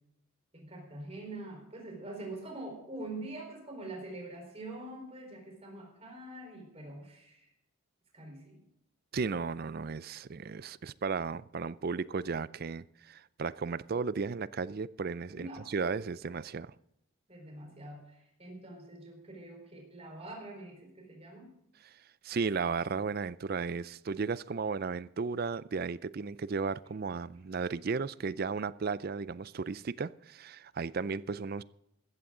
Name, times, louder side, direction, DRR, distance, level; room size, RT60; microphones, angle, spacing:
voice 1, 0.5-7.5 8.1-8.6 15.3-15.7 17.3-21.5, right 2 dB, 30° right, 4.3 m, -44 dB
voice 2, 9.1-16.7 22.2-31.6, right 4 dB, 45° right, 0.4 m, -35 dB
15.5 x 14.0 x 3.8 m
head